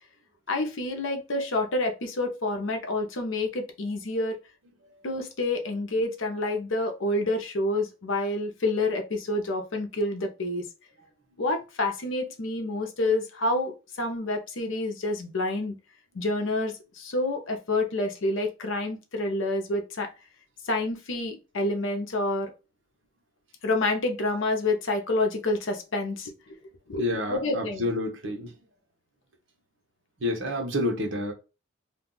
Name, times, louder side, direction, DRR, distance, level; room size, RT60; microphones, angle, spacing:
voice 1, 0.5-4.4 5.0-10.6 11.4-13.7 14.0-15.8 16.1-20.1 20.6-22.5 23.6-26.6 26.9-27.0 27.3-27.8, left 2 dB, 75° left, 0.7 m, -28 dB
voice 2, 27.0-28.6 30.2-31.3, left 1 dB, 70° right, 0.9 m, -29 dB
2.6 x 2.3 x 3.8 m
head